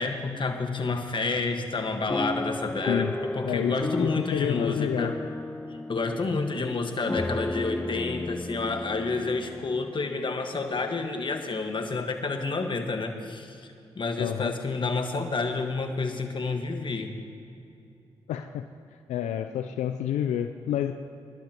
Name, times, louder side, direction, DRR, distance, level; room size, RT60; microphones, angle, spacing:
voice 1, 0.0-5.1 5.9-13.6 13.9-17.1, left 3 dB, 45° left, 5 dB, 1.6 m, -29 dB
sound 1, 2.1-10.2 10.8-10.9 11.2-11.4, left 2 dB, 10° left, 0.4 m, -34 dB
voice 2, 3.4-5.1 14.2-14.5 18.3-18.6 19.1-20.9, left 10 dB, 85° left, 7 dB, 0.5 m, -29 dB
22.5 x 12.0 x 3.0 m, 2.7 s
supercardioid pair, 50°, 12 cm